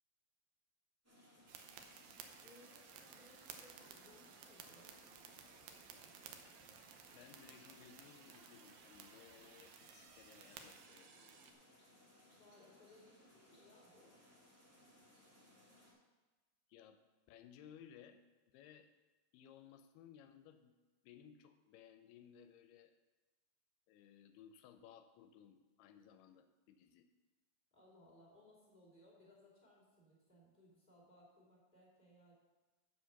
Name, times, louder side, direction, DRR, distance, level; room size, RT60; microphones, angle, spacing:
sound 1, 1.0-15.9, left 1 dB, 10° right, 0.8 m, -66 dB
sound 2, 1.5-11.5, right 7 dB, 75° right, 2.4 m, -57 dB
voice 1, 2.4-4.9 12.4-14.2 27.7-32.3, left 1 dB, 15° left, -5 dB, 2.2 m, -65 dB
voice 2, 7.1-11.7 16.7-17.0 17.3-18.2 18.5-18.9 19.3-20.8 21.0-22.9 23.9-27.1, left 9 dB, 80° left, 8 dB, 2.5 m, -60 dB
7.9 x 7.4 x 5.8 m, 1.2 s
omnidirectional pair, 4.7 m